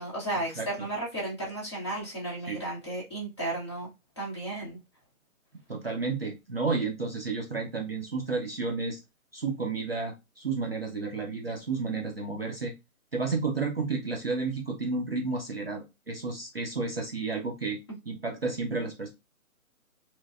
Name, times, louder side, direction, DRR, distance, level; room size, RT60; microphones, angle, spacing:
voice 1, 0.0-3.9 4.2-4.8, right 2 dB, 20° left, 0.8 m, -34 dB
voice 2, 0.6-0.9 2.5-2.6 5.7-9.0 9.3-12.7 13.1-17.8 18.1-19.1, right 4 dB, 45° right, 0.4 m, -31 dB
3.0 x 2.0 x 2.3 m
hypercardioid pair, 175°, 42 cm